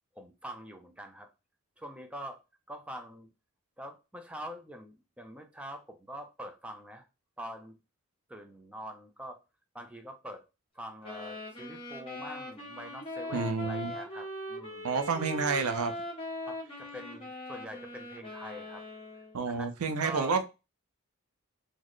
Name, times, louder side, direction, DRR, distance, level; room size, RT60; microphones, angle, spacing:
voice 1, 0.2-1.3 1.8-2.4 2.7-3.3 3.8-7.0 7.4-7.8 8.3-9.4 9.7-10.4 10.7-15.0 16.4-18.8 19.5-20.4, equal, 5° right, 5 dB, 0.4 m, -44 dB
sound 1, 11.0-19.4, left 1 dB, 25° left, 1.3 m, -41 dB
voice 2, 13.3-13.9 14.8-15.9 19.3-20.4, right 4 dB, 85° right, 8 dB, 0.5 m, -29 dB
3.9 x 2.1 x 3.1 m, 0.27 s
head